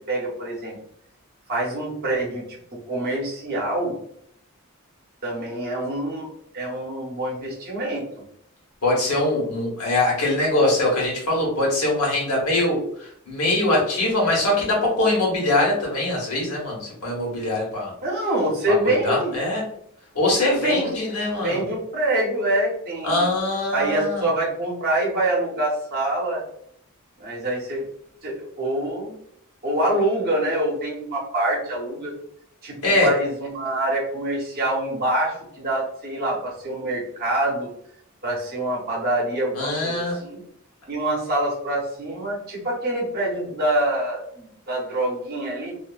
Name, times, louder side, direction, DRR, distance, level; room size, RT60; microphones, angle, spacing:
voice 1, 0.1-0.8 1.5-2.6 2.9-3.9 5.2-8.0 18.0-19.3 20.6-20.9 21.4-23.2 23.7-26.4 27.2-27.8 28.2-29.2 29.6-32.1 32.6-32.8 33.0-37.7 38.2-40.4 40.9-45.7, right 1 dB, 45° right, -3 dB, 0.8 m, -25 dB
voice 2, 8.8-17.9 18.8-19.6 20.1-21.6 23.0-24.2 32.8-33.1 39.5-40.2, left 2 dB, 90° left, -3 dB, 1.1 m, -22 dB
2.7 x 2.1 x 2.3 m, 0.68 s
head